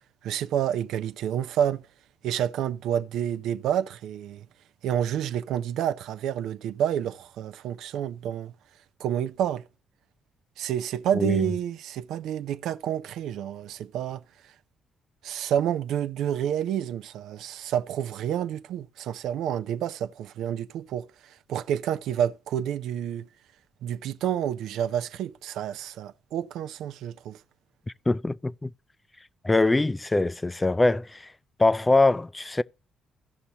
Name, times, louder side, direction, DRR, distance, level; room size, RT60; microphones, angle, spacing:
voice 1, 0.2-1.9 2.2-4.5 4.8-8.5 9.0-9.7 10.6-14.5 15.2-23.3 23.8-27.4, right 10 dB, 85° right, 0.4 m, -29 dB
voice 2, 28.1-28.7 29.4-31.3 31.6-32.6, left 2 dB, 15° left, 0.4 m, -23 dB
16.0 x 5.6 x 2.8 m
cardioid pair, 90°, 0 cm